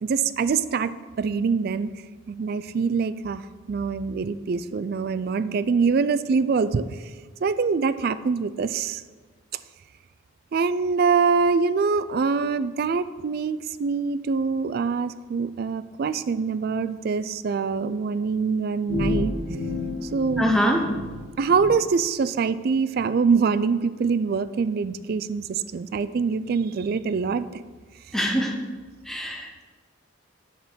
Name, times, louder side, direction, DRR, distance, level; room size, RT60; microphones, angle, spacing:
voice 1, 0.0-1.9 2.3-6.9 7.4-9.0 10.5-19.3 20.1-20.6 21.4-27.6, right 5 dB, 50° right, 13 dB, 0.3 m, -24 dB
sound 1, 18.9-21.7, left 2 dB, 75° left, 1.9 m, -30 dB
voice 2, 20.4-20.9 28.1-28.6 29.1-29.6, equal, ahead, 1 dB, 0.7 m, -23 dB
7.8 x 5.1 x 6.1 m, 1.4 s
head